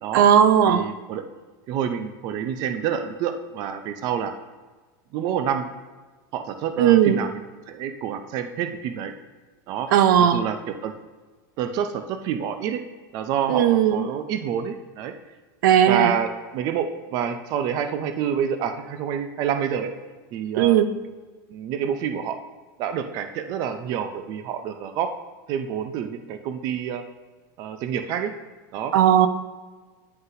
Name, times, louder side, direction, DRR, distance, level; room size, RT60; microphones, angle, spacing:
voice 1, 0.1-0.9 6.8-7.2 9.9-10.4 13.5-14.0 15.6-16.1 20.6-20.9 28.9-29.3, right 10 dB, 85° right, 11 dB, 0.5 m, -17 dB
voice 2, 0.7-1.2 1.7-4.3 5.1-5.7 6.3-9.1 9.7-9.9 10.2-10.9 11.6-12.8 13.1-15.1 15.9-19.9 20.3-20.8 21.5-22.4 22.8-25.1 25.5-27.0 27.6-28.3 28.7-28.9, right 8 dB, 40° right, 8 dB, 0.5 m, -28 dB
9.6 x 3.9 x 2.7 m, 1.3 s
supercardioid pair, 165°, 10 cm